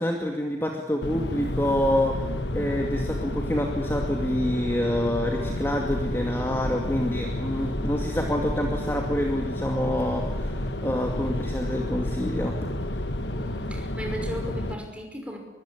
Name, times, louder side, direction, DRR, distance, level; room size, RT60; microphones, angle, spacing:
voice 1, 0.0-12.6, left 1 dB, 15° left, 1 dB, 2.4 m, -27 dB
sound 1, 1.0-14.7, left 1 dB, 75° left, 1.5 m, -30 dB
voice 2, 13.3-15.4, equal, 5° right, 2 dB, 5.4 m, -37 dB
24.0 x 23.0 x 8.9 m, 1.1 s
head